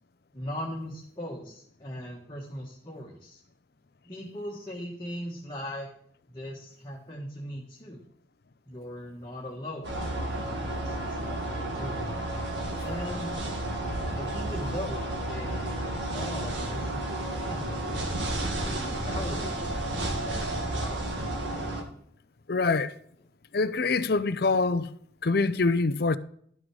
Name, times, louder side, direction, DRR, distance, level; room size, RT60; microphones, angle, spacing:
voice 1, 0.3-3.4 4.0-5.9 6.3-8.0 8.7-9.9 10.7-12.0 12.8-13.4 14.1-18.1 18.6-21.3, left 1 dB, 25° left, 1.5 m, -39 dB
sound 1, 9.8-21.8, right 1 dB, 75° right, 1.8 m, -32 dB
voice 2, 22.5-23.0 23.5-24.9 25.2-26.2, left 3 dB, 55° left, 0.6 m, -25 dB
12.0 x 6.2 x 4.8 m
head